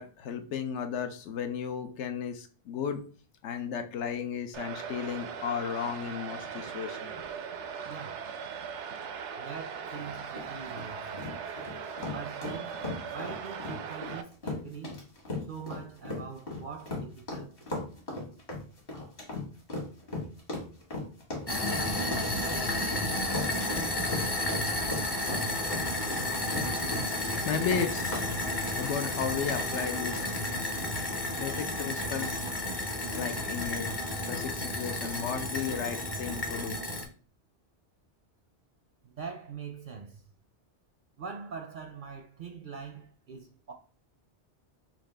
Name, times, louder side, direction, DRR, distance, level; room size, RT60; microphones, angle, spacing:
voice 1, 0.0-3.0 3.4-7.1 27.4-28.2 28.8-30.3 31.4-32.5 33.1-36.8, left 7 dB, 90° left, 1.0 m, -34 dB
sound 1, 4.5-14.2, right 7 dB, 85° right, 0.9 m, -39 dB
voice 2, 7.9-8.3 9.3-11.3 12.0-12.8 13.1-15.0 15.5-17.6 39.0-40.2 41.2-43.7, right 6 dB, 60° right, 0.6 m, -43 dB
sound 2, 9.9-28.3, left 2 dB, 55° left, 1.7 m, -37 dB
sound 3, 21.5-37.0, left 1 dB, 30° left, 0.5 m, -32 dB
5.8 x 2.4 x 3.3 m
omnidirectional pair, 1.1 m